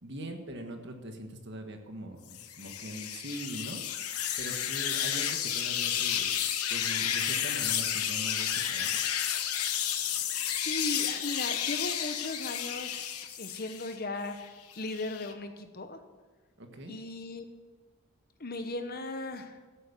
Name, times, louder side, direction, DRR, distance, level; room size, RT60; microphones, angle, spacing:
voice 1, 0.0-3.8 4.4-6.4 6.7-9.0 16.6-16.9, right 1 dB, 50° right, 4 dB, 1.6 m, -42 dB
sound 1, 2.3-13.9 14.4-15.3, left 9 dB, 85° left, 1.2 m, -32 dB
voice 2, 10.5-13.1 13.4-14.4 14.8-16.0 16.8-17.4 18.4-19.6, left 2 dB, 40° left, 8 dB, 1.0 m, -37 dB
14.0 x 8.2 x 7.4 m, 1.3 s
head